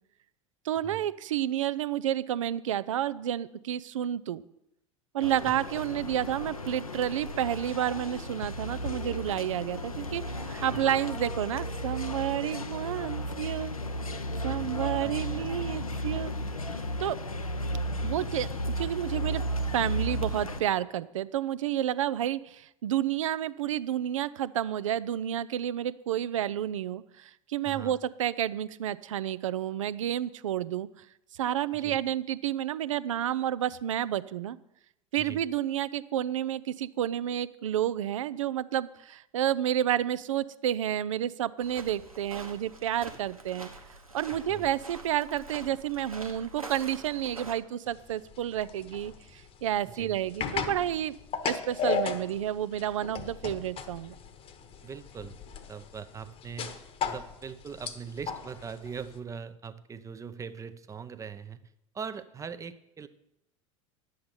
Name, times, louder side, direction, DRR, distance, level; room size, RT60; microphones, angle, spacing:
voice 1, 0.6-4.4 5.1-13.7 14.4-16.3 17.0-17.2 18.0-18.5 18.8-19.4 19.7-30.9 31.3-34.6 35.1-43.7 44.1-51.1 51.4-54.1, right 11 dB, 65° right, 17 dB, 0.5 m, -30 dB
sound 1, 5.2-20.6, equal, 85° left, 0.7 m, -34 dB
voice 2, 14.5-15.5 18.0-18.4 27.6-28.0 31.7-32.0 35.2-35.4 44.5-44.7 49.9-50.2 54.8-55.4 55.7-56.8 57.0-61.6 61.9-63.1, right 6 dB, 20° right, 13 dB, 0.6 m, -41 dB
sound 2, 41.6-47.5, right 2 dB, 90° right, 1.2 m, -45 dB
sound 3, 47.9-59.2, left 6 dB, 35° left, 1.1 m, -36 dB
10.5 x 7.8 x 5.4 m, 0.82 s
figure-of-eight pair, 80°, 18 cm